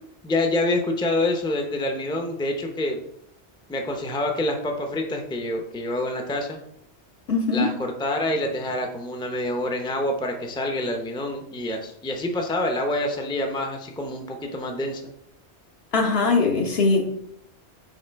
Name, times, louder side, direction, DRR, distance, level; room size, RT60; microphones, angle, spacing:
voice 1, 0.2-3.0 3.7-6.6 7.5-15.0, left 1 dB, 5° left, 3 dB, 0.6 m, -27 dB
voice 2, 7.3-7.7 15.9-17.0, left 4 dB, 60° left, 2 dB, 1.3 m, -21 dB
6.4 x 4.3 x 4.5 m, 0.74 s
omnidirectional pair, 1.2 m